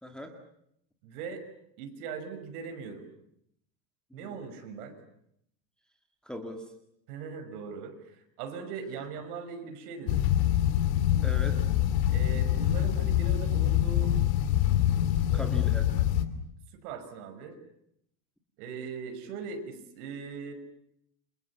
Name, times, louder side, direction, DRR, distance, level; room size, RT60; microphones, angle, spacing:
voice 1, 0.0-0.3 4.1-4.4 6.2-6.7 11.2-11.6 15.3-15.9, equal, ahead, 3 dB, 2.0 m, -39 dB
voice 2, 1.0-1.4 1.8-3.1 4.1-5.0 7.1-10.2 12.1-14.1 15.3-15.5 16.7-17.6 18.6-20.5, right 5 dB, 65° right, 7 dB, 6.1 m, -40 dB
sound 1, 10.1-16.2, left 11 dB, 75° left, 2.9 m, -25 dB
29.5 x 26.5 x 7.3 m, 0.74 s
supercardioid pair, 165°, 49 cm